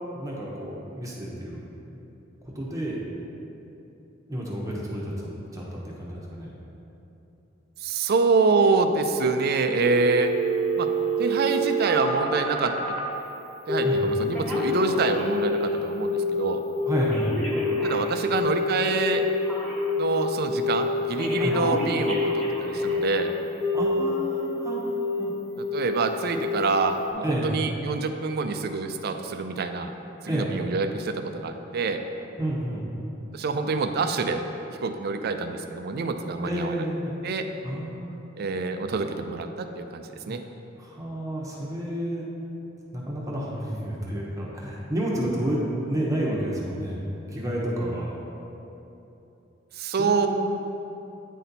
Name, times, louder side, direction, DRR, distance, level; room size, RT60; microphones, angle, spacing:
voice 1, 0.1-1.6 2.5-3.0 4.3-5.1 5.5-6.5 13.8-14.0 16.9-17.3 21.4-21.6 23.7-25.3 27.2-27.5 30.3-30.5 32.4-32.9 36.4-37.2 37.6-38.2 40.3-40.4 40.8-42.3 42.9-47.0 47.3-48.2 50.0-50.3, right 1 dB, 15° right, -4 dB, 0.9 m, -30 dB
voice 2, 7.8-10.3 10.8-10.9 11.2-12.7 13.7-16.6 17.8-19.2 20.0-23.3 25.7-29.9 30.2-32.0 33.3-34.4 34.8-36.9 37.2-37.5 38.4-40.4 49.7-50.3, right 4 dB, 55° right, 7 dB, 0.4 m, -26 dB
Telephone, 9.8-13.1 13.7-14.1 14.3-15.7 16.0-16.4 16.8-20.1 20.5-20.9 21.2-23.2 23.6-24.5 24.8-25.2 25.6-26.0 26.3-26.7 27.1-27.2, left 2 dB, 5° left, 1.4 m, -27 dB
9.1 x 4.2 x 4.0 m, 3.0 s
head